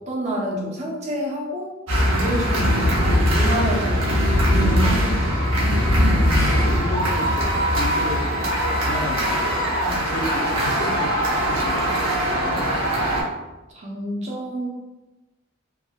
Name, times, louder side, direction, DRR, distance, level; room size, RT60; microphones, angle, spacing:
voice 1, 0.0-4.1 4.4-5.6 9.8-10.1 13.7-14.7, right 1 dB, 35° right, -2 dB, 0.5 m, -29 dB
sound 1, 1.9-13.2, equal, 85° right, 0.9 m, -21 dB
voice 2, 6.3-12.5, left 2 dB, 65° left, 1 dB, 0.5 m, -33 dB
3.3 x 2.1 x 2.2 m, 1.1 s
head